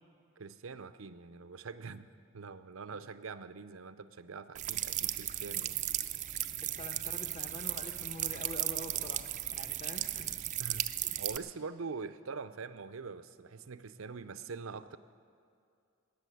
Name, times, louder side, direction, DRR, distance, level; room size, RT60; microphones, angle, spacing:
voice 1, 0.4-5.8 10.6-10.9 11.2-15.0, right 4 dB, 85° right, 12 dB, 0.6 m, -44 dB
sound 1, 4.6-11.4, right 13 dB, 35° right, 0.4 m, -36 dB
voice 2, 6.6-10.4 11.0-11.2, left 2 dB, 30° left, 5 dB, 1.0 m, -46 dB
18.5 x 6.9 x 9.2 m, 2.5 s
head